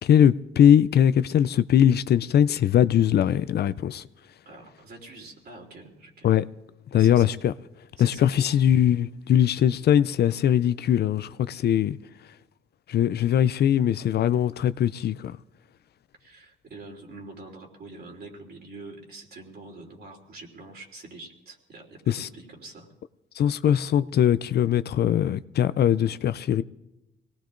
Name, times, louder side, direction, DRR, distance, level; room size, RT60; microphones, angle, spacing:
voice 1, 0.0-4.0 6.2-6.4 6.9-7.5 8.0-12.0 12.9-15.3 22.1-22.3 23.4-26.6, left 10 dB, 55° left, 0.4 m, -21 dB
voice 2, 4.4-6.3 6.9-7.3 8.0-8.6 16.2-22.9, right 3 dB, 55° right, 3.2 m, -45 dB
24.0 x 18.5 x 2.6 m
cardioid pair, 90°, 20 cm